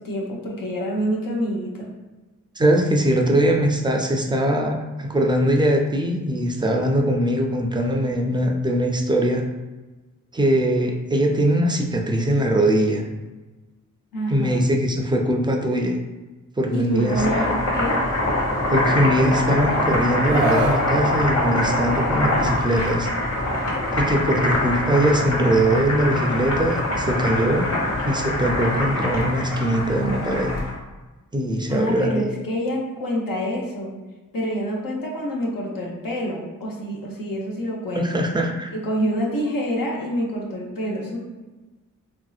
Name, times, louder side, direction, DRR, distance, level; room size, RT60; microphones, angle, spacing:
voice 1, 0.0-1.9 14.1-14.7 16.7-18.0 31.7-33.9 34.3-38.3 38.7-41.2, equal, 85° left, -2 dB, 0.7 m, -27 dB
voice 2, 2.6-9.4 10.3-13.0 14.3-15.9 16.6-17.6 18.7-23.1 23.9-27.7 28.0-30.5 31.3-32.1 37.9-38.7, right 1 dB, 15° right, 2 dB, 0.3 m, -21 dB
Boiling, 16.9-30.7, left 1 dB, 50° left, 1.0 m, -24 dB
Screaming, 20.3-20.8 22.3-22.5, right 2 dB, 85° right, 0.5 m, -23 dB
3.0 x 2.7 x 2.3 m, 1.2 s
wide cardioid pair, 80°, 33 cm